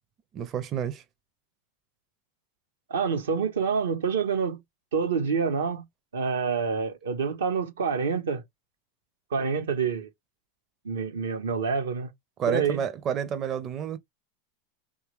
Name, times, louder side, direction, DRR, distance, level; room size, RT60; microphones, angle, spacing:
voice 1, 0.3-1.0 12.4-14.0, right 8 dB, 35° right, 0.5 m, -30 dB
voice 2, 2.9-4.6 4.9-5.9 6.1-8.4 9.3-10.1 10.8-12.1 12.5-12.8, right 5 dB, 80° right, 0.7 m, -27 dB
3.2 x 2.2 x 3.0 m
hypercardioid pair, 95°, 0 cm